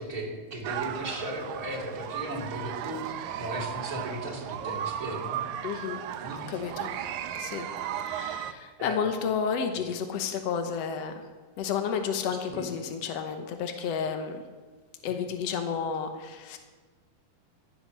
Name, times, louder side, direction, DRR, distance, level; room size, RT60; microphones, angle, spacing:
voice 1, 0.0-5.4 6.2-6.4 8.8-9.0 12.5-12.7, right 1 dB, 25° right, -2 dB, 2.7 m, -36 dB
sound 1, 0.6-8.5, right 10 dB, 85° right, 1.7 m, -35 dB
voice 2, 5.6-6.0 6.3-6.9 7.3-7.7 8.0-11.1 11.6-14.4 15.0-16.6, left 6 dB, 85° left, 6 dB, 1.4 m, -31 dB
14.5 x 10.5 x 6.4 m, 1.4 s
omnidirectional pair, 4.3 m